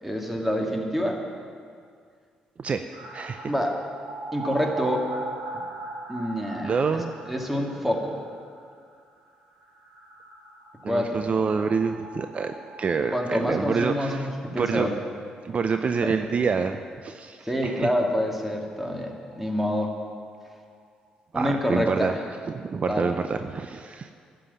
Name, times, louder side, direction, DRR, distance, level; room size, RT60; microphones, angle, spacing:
voice 1, 0.0-1.2 3.4-3.8 4.3-5.1 6.1-6.7 7.3-8.2 10.9-11.2 13.1-15.0 16.0-16.2 17.4-20.0 21.3-22.2 22.9-23.1, equal, 5° right, 1 dB, 2.4 m, -27 dB
sound 1, 2.9-14.5 14.8-14.9 15.2-15.3 18.3-18.4 18.6-18.7 19.0-20.7 21.1-21.2, right 2 dB, 85° right, 4.5 m, -41 dB
voice 2, 3.1-3.5 6.6-7.2 10.8-14.9 15.4-17.9 21.3-22.1 22.5-24.1, right 5 dB, 45° right, 8 dB, 0.6 m, -27 dB
11.5 x 7.8 x 9.9 m, 2.2 s
supercardioid pair, 60°, 3 cm